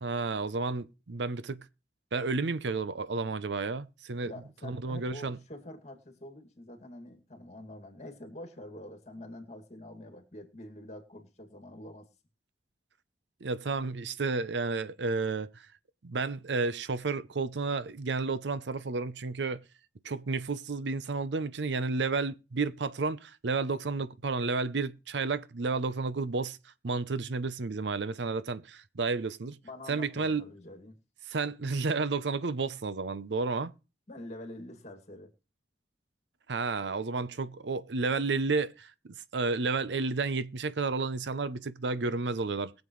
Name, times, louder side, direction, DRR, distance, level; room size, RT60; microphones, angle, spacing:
voice 1, 0.0-1.7 2.1-4.3 4.6-5.4 13.4-15.6 16.0-19.6 20.0-26.6 26.8-29.6 29.9-30.5 31.3-33.7 36.5-38.9 39.3-42.7, right 4 dB, 85° right, 0.7 m, -31 dB
voice 2, 4.2-12.1 29.6-31.0 34.1-35.3, left 1 dB, 40° left, 2.3 m, -46 dB
21.5 x 7.4 x 3.2 m
head